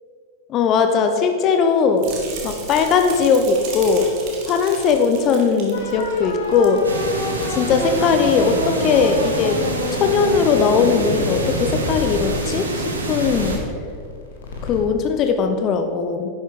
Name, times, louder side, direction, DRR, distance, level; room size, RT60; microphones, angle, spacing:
voice 1, 0.5-2.0 2.4-4.1 4.5-6.9 7.5-9.6 10.0-13.6 14.6-16.3, left 5 dB, 35° left, 6 dB, 1.0 m, -19 dB
sound 1, 2.0-6.8 7.1-7.4 7.9-8.0, right 4 dB, 45° right, 2.6 m, -35 dB
sound 2, 5.7-14.9, left 1 dB, 65° left, 2.9 m, -28 dB
sound 3, 6.8-13.6, right 2 dB, 70° right, 2.0 m, -27 dB
11.0 x 10.5 x 5.5 m, 2.3 s
figure-of-eight pair, 90°, 0 cm